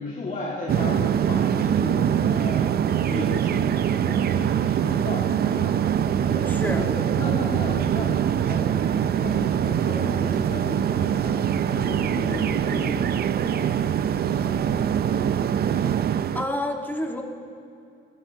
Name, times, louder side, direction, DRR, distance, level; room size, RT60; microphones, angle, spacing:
voice 1, 0.0-2.8 3.0-5.8 6.2-6.5 6.8-11.4 11.7-15.0 15.6-15.8, left 3 dB, 40° left, -6 dB, 2.2 m, -35 dB
sound 1, 0.7-16.5, right 9 dB, 50° right, 0.5 m, -23 dB
sound 2, 5.7-15.2, equal, 30° right, 3.3 m, -42 dB
voice 2, 6.4-6.8 16.3-17.2, left 1 dB, 10° left, 1 dB, 1.7 m, -28 dB
21.0 x 12.5 x 2.9 m, 2.5 s
cardioid pair, 90°, 20 cm